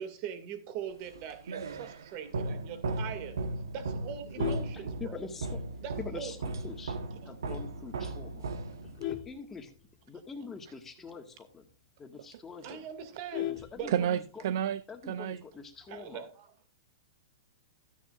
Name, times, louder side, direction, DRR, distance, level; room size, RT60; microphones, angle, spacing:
voice 1, 0.0-3.4 3.7-5.2 5.8-6.3 12.6-13.9 15.9-16.5, right 8 dB, 45° right, 2.0 m, -41 dB
sound 1, 1.1-9.2, right 2 dB, 85° right, 1.1 m, -37 dB
Vehicle horn car horn honking, 4.1-5.6 6.0-6.3 6.6-6.7 7.1-7.2 7.5-7.9 8.4-10.3 10.6-10.7 11.0-11.1 11.5-11.6 12.0-12.1 12.3-14.4 15.6-16.0, left 13 dB, 35° left, 1.3 m, -39 dB
voice 2, 4.7-5.6 6.0-7.0 7.2-8.5 9.1-9.7 10.1-11.7 12.0-12.9 13.7-14.4 14.9-16.3, left 4 dB, 15° left, 1.6 m, -44 dB
voice 3, 13.9-14.8 15.1-15.4, right 10 dB, 60° right, 0.5 m, -30 dB
13.5 x 9.3 x 2.4 m
hypercardioid pair, 130°, 2 cm